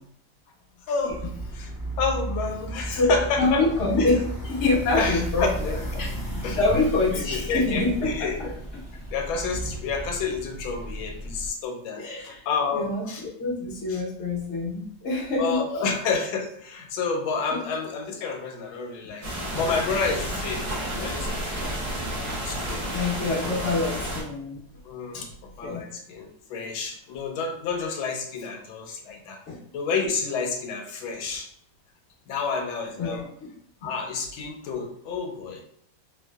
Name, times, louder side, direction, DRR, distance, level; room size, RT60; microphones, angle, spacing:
voice 1, 0.9-1.7 2.0-3.7 4.0-4.1 5.0-6.0 6.4-6.6 7.1-8.5 9.1-13.2 13.9-14.0 15.4-19.2 19.5-21.7 22.4-23.1 24.8-25.3 25.6-29.4 29.7-31.5 32.3-33.3 33.8-35.6, left 5 dB, 80° left, 3 dB, 1.3 m, -30 dB
sound 1, 1.1-11.5, right 1 dB, 20° left, 0.5 m, -34 dB
voice 2, 2.9-6.2 6.6-8.1 12.0-12.4 12.8-15.8 22.9-24.6 25.1-25.3 25.6-25.8 29.5-29.6 33.0-33.5, left 2 dB, 50° left, -3 dB, 0.9 m, -26 dB
sound 2, 19.2-24.2, equal, 65° right, 0.4 m, -31 dB
3.2 x 2.5 x 2.2 m, 0.67 s
omnidirectional pair, 2.1 m